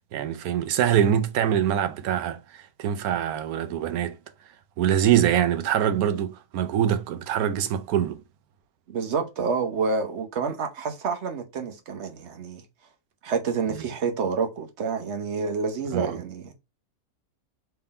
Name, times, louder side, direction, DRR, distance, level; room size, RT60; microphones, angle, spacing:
voice 1, 0.1-2.4 2.8-4.2 4.8-8.2 15.9-16.2, right 10 dB, 80° right, 1.1 m, -24 dB
voice 2, 8.9-12.6 13.2-16.5, right 5 dB, 55° right, 1.1 m, -28 dB
3.7 x 3.4 x 4.2 m
omnidirectional pair, 1.5 m